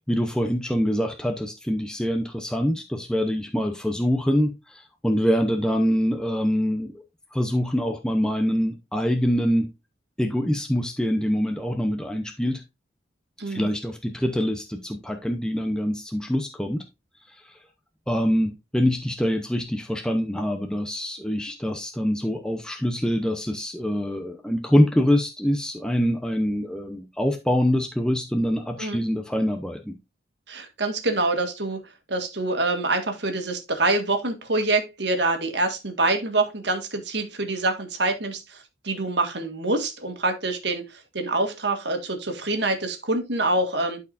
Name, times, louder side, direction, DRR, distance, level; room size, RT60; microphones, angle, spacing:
voice 1, 0.0-6.9 7.3-9.7 10.2-12.6 13.5-16.8 17.3-17.6 18.1-30.0, equal, 5° left, 0.7 m, -25 dB
voice 2, 13.4-13.7 28.8-29.0 30.5-31.8 32.1-44.0, right 2 dB, 60° right, 1.7 m, -26 dB
12.0 x 4.6 x 2.5 m
head